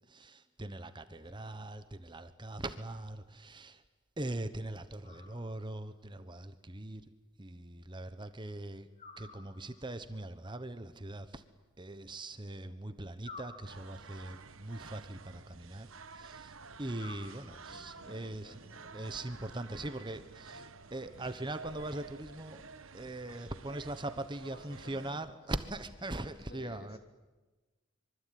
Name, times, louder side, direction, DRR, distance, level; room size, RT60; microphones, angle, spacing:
voice 1, 0.0-3.8 4.2-7.1 7.4-8.9 9.2-11.4 11.8-18.5 18.9-22.6 22.9-27.0, right 1 dB, 20° right, 10 dB, 1.1 m, -41 dB
voice 2, 1.3-1.6 5.1-5.5 16.9-17.0 17.7-18.9 21.0-21.2 24.5-25.3 26.5-27.0, left 2 dB, 50° left, 5 dB, 3.3 m, -56 dB
sound 1, 5.0-5.9 9.0-10.0 13.2-14.3 17.0-18.0, left 3 dB, 35° left, 2.8 m, -52 dB
sound 2, 13.6-25.1, right 4 dB, 75° right, 1.4 m, -51 dB
25.5 x 24.0 x 9.4 m, 1.2 s
head